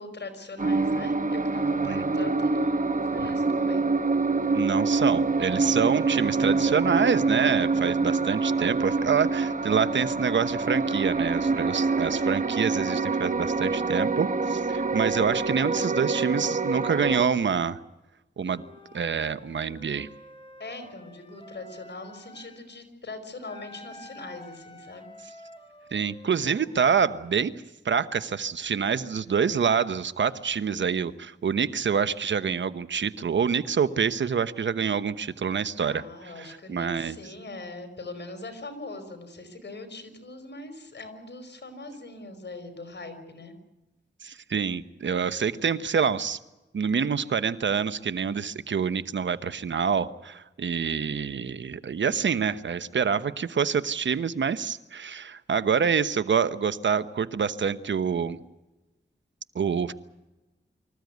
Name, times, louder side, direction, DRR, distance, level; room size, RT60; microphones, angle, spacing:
voice 1, 0.0-3.9 20.6-25.1 35.8-43.5, left 2 dB, 70° left, 7 dB, 5.1 m, -41 dB
sound 1, 0.6-17.3, right 4 dB, 45° right, 1.4 m, -26 dB
voice 2, 4.5-17.8 18.4-18.6 18.9-20.1 25.9-27.5 27.8-36.0 36.4-37.2 44.2-46.4 46.7-58.4 59.5-59.9, right 6 dB, 85° right, 13 dB, 1.0 m, -26 dB
Wind instrument woodwind instrument, 18.4-22.7 23.4-27.3, left 1 dB, 30° left, 5.4 m, -49 dB
25.0 x 15.0 x 9.4 m, 1.0 s
cardioid pair, 55°, 19 cm